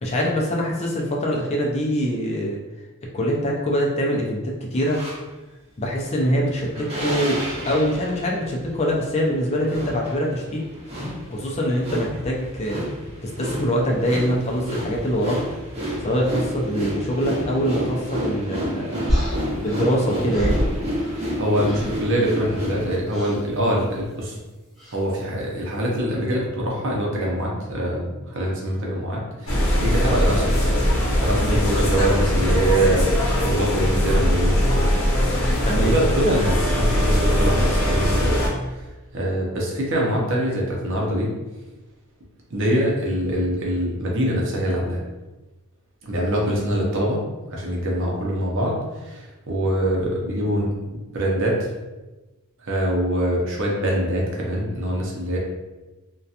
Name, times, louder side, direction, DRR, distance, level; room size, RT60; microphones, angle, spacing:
voice 1, 0.0-2.6 3.1-5.0 5.8-10.6 11.3-12.9 13.2-15.4 16.0-19.0 19.6-20.7 31.4-31.6 35.6-35.9, equal, 30° left, -2 dB, 0.4 m, -24 dB
sound 1, 4.8-5.2 6.0-23.0, equal, 30° right, 0.8 m, -30 dB
sound 2, 19.1-21.4 21.6-22.1 23.1-23.4 24.8-25.0, equal, ahead, 0.8 m, -27 dB
voice 2, 21.4-24.4 24.9-30.7 31.2-34.9 35.8-38.4 38.7-38.8 39.1-41.3 42.5-45.0 46.0-47.2 47.5-51.7 52.6-55.4, right 1 dB, 60° right, -2 dB, 0.6 m, -24 dB
sound 3, 29.5-38.5, equal, 65° left, 0.7 m, -20 dB
2.7 x 2.2 x 2.4 m, 1.1 s
head